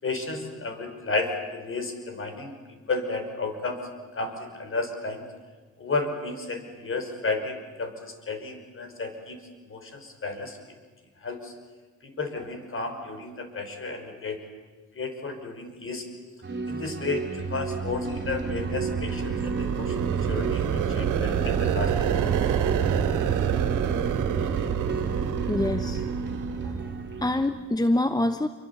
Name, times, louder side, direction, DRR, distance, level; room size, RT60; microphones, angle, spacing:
voice 1, 0.0-2.6 2.9-3.8 4.2-5.2 5.8-9.4 9.7-10.6 11.2-11.5 12.0-14.4 15.0-16.0 16.7-22.3, left 3 dB, 45° left, 7 dB, 5.6 m, -32 dB
sound 1, 16.4-27.6, right 4 dB, 35° right, 3.6 m, -33 dB
sound 2, 17.7-27.4, right 8 dB, 90° right, 2.4 m, -28 dB
voice 2, 25.5-26.0 26.6-28.5, left 1 dB, 15° left, 9 dB, 1.1 m, -26 dB
27.0 x 24.0 x 8.5 m, 1.3 s
cardioid pair, 90°, 30 cm